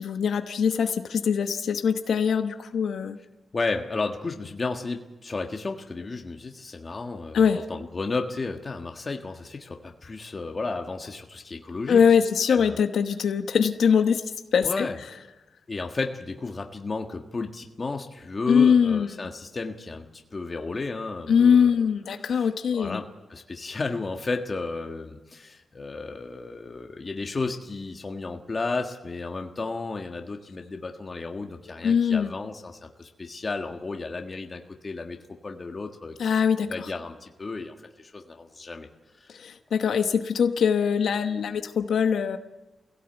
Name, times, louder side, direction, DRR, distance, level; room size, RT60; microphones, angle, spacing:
voice 1, 0.0-3.2 7.3-7.6 11.9-14.2 14.5-14.9 18.5-19.1 21.3-23.0 31.8-32.3 36.2-36.7 39.3-42.4, left 7 dB, 80° left, 7 dB, 1.1 m, -22 dB
voice 2, 3.5-12.1 12.5-12.8 14.6-15.0 15.7-21.7 22.2-35.2 35.4-36.1 36.6-38.9 39.2-39.3, left 3 dB, 30° left, 3 dB, 1.6 m, -33 dB
23.0 x 16.5 x 8.0 m, 1.1 s
wide cardioid pair, 140°, 0 cm